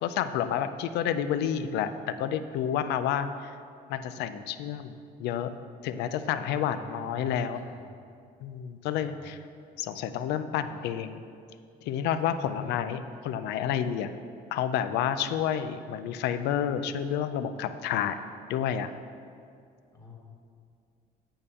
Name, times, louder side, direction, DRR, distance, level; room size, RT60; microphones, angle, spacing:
voice 1, 0.0-3.5 3.9-4.9 5.2-5.5 5.8-7.6 8.4-9.4 9.8-11.2 11.8-14.1 14.5-18.2 18.5-18.9, left 9 dB, 85° left, 11 dB, 0.4 m, -30 dB
voice 2, 6.6-7.3 7.6-7.8 9.0-9.2 12.2-12.7 19.9-20.2, left 3 dB, 20° left, -2 dB, 1.4 m, -46 dB
8.8 x 3.6 x 6.8 m, 2.4 s
cardioid pair, 110°, 17 cm